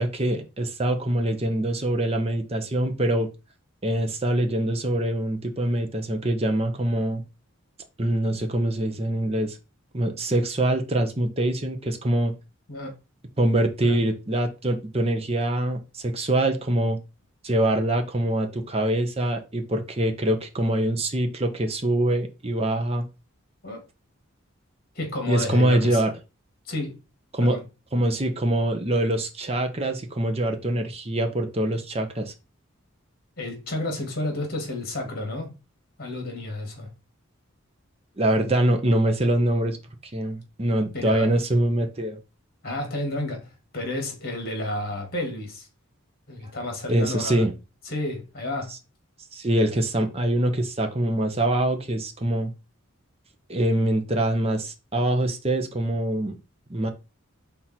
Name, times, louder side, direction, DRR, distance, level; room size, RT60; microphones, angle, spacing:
voice 1, 0.0-3.3 3.8-7.2 8.0-9.6 9.9-12.3 13.4-17.0 17.4-23.1 25.3-26.1 27.3-27.6 27.9-32.3 38.2-39.8 40.1-42.2 46.9-47.5 49.3-52.5 53.5-56.4 56.7-56.9, right 1 dB, 30° right, 0.9 m, -24 dB
voice 2, 24.9-26.0 26.7-27.0 27.4-27.6 33.4-35.5 36.0-36.9 40.9-41.3 42.6-45.7 46.3-47.4 47.9-48.7, left 1 dB, 45° left, 2.3 m, -31 dB
5.6 x 3.8 x 4.4 m
head